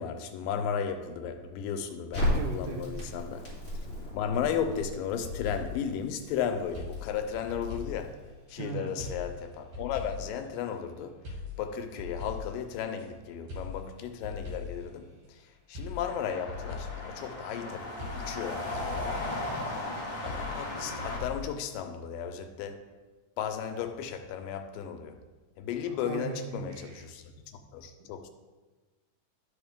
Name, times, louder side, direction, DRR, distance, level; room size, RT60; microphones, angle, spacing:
voice 1, 0.0-3.5 4.1-8.2 8.5-11.2 11.6-15.2 15.7-19.2 20.2-22.9 23.4-25.2 25.6-28.3, left 8 dB, 90° left, 2.3 m, -35 dB
Crackle, 2.1-8.3, left 1 dB, 25° left, 2.9 m, -36 dB
voice 2, 2.3-3.1 8.6-9.1 25.9-27.1, right 6 dB, 75° right, 2.3 m, -39 dB
sound 1, 4.9-5.9 6.8-8.6 9.0-10.4 11.3-13.1 13.5-14.9 15.8-17.6 18.0-19.4 20.3-21.8, left 4 dB, 50° right, 3.6 m, -41 dB
sound 2, 16.0-21.2, left 1 dB, 50° left, 1.1 m, -37 dB
11.5 x 5.1 x 3.5 m
omnidirectional pair, 3.9 m